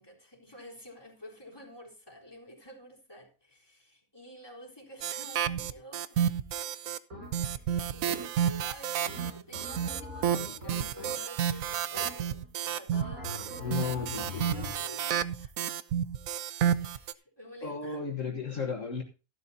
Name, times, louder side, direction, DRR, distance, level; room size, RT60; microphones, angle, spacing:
voice 1, 0.0-6.7 7.3-15.5 16.8-18.0, equal, 15° left, 3.8 m, -50 dB
sound 1, 5.0-7.0 7.3-17.1, right 9 dB, 70° right, 1.1 m, -31 dB
sound 2, 7.1-7.6 8.1-8.6 9.1-11.5 11.9-12.5 12.9-14.9, left 1 dB, 85° right, 6.5 m, -43 dB
voice 2, 13.6-14.7 17.6-19.0, left 5 dB, 60° left, 1.8 m, -34 dB
15.0 x 11.5 x 2.8 m
omnidirectional pair, 1.5 m